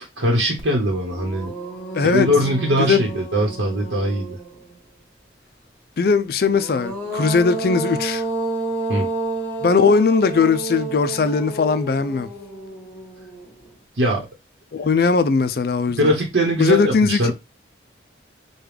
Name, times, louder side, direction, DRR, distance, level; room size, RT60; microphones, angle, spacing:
voice 1, 0.2-1.5 2.0-4.4 8.9-9.1 14.0-14.3 15.9-17.3, equal, 85° right, 1.1 m, -21 dB
sound 1, 0.6-0.7 1.1-4.7 6.4-13.7, right 2 dB, 10° left, 1.2 m, -30 dB
voice 2, 1.9-2.3 2.8-3.1 6.0-8.2 9.6-12.3 14.7-16.1 16.6-17.3, left 5 dB, 55° left, 0.4 m, -19 dB
5.0 x 2.3 x 3.3 m
head